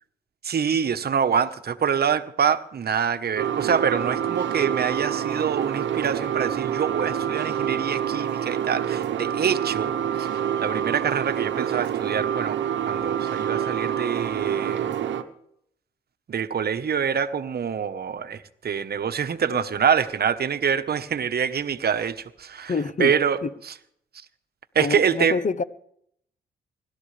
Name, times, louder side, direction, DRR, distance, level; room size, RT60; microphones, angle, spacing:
voice 1, 0.4-12.6 12.8-15.0 16.3-22.7 23.0-23.4 23.6-23.7 24.7-25.4, right 7 dB, 55° right, 1.1 m, -25 dB
sound 1, 3.3-15.2, right 9 dB, 70° right, 1.1 m, -27 dB
voice 2, 22.7-23.1 23.4-23.5 24.8-25.6, left 4 dB, 40° left, 1.0 m, -26 dB
25.0 x 12.5 x 3.4 m
supercardioid pair, 55°, 20 cm